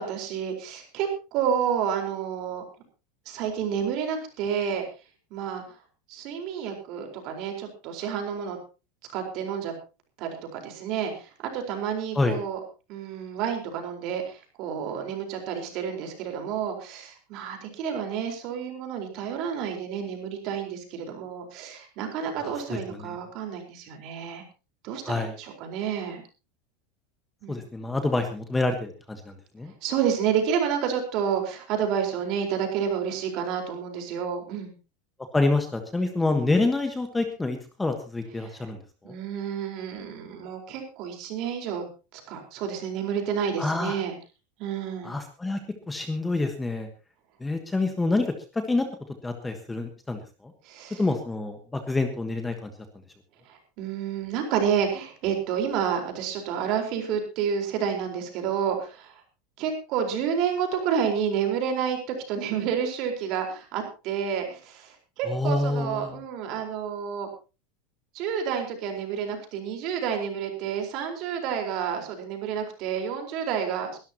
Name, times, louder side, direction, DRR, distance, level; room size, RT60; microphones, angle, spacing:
voice 1, 0.0-2.6 3.3-4.8 5.3-5.6 6.1-8.6 9.1-9.7 10.2-12.6 12.9-24.4 24.8-26.2 27.4-27.6 29.8-34.7 38.4-38.5 39.0-41.8 42.1-44.1 44.6-45.1 50.6-51.0 53.5-59.1 59.6-67.3 68.1-74.0, right 8 dB, 45° right, 3 dB, 4.6 m, -30 dB
voice 2, 22.4-23.1 25.0-25.3 27.5-29.7 35.3-38.8 39.0-39.1 43.6-44.0 45.0-45.6 45.9-46.9 47.4-48.3 48.5-48.9 49.2-50.5 51.0-52.7 65.2-66.2, left 2 dB, 10° left, 6 dB, 1.4 m, -27 dB
23.0 x 12.5 x 3.0 m, 0.32 s
supercardioid pair, 160°, 0 cm